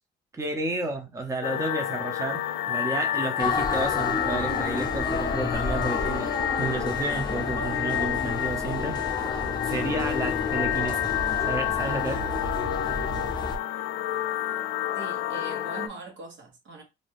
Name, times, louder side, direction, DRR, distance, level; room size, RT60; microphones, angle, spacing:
voice 1, 0.3-2.4 2.7-6.3 6.6-9.0 9.6-11.1 11.4-12.2, right 2 dB, 15° right, 0.6 m, -31 dB
sound 1, 1.4-15.9, left 11 dB, 80° left, 0.4 m, -29 dB
sound 2, 3.4-13.6, left 3 dB, 20° left, 0.7 m, -31 dB
voice 2, 14.9-16.8, right 3 dB, 70° right, 1.1 m, -41 dB
2.6 x 2.2 x 3.3 m
cardioid pair, 90°, 20 cm